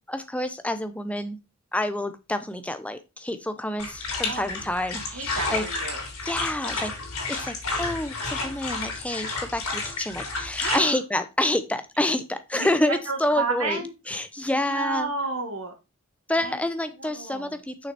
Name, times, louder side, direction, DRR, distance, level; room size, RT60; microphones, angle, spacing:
voice 1, 0.1-1.4 1.7-5.6 6.2-6.9 7.3-13.8 14.1-15.1 16.3-17.9, left 1 dB, 5° left, 9 dB, 0.7 m, -28 dB
sound 1, 3.8-10.8, left 3 dB, 90° left, 3.3 m, -31 dB
voice 2, 5.0-6.0 10.6-11.0 12.5-12.7 13.1-13.9 14.5-15.7 16.4-16.6 17.0-17.6, right 3 dB, 75° right, 4 dB, 2.1 m, -31 dB
6.4 x 5.8 x 4.3 m, 0.27 s
head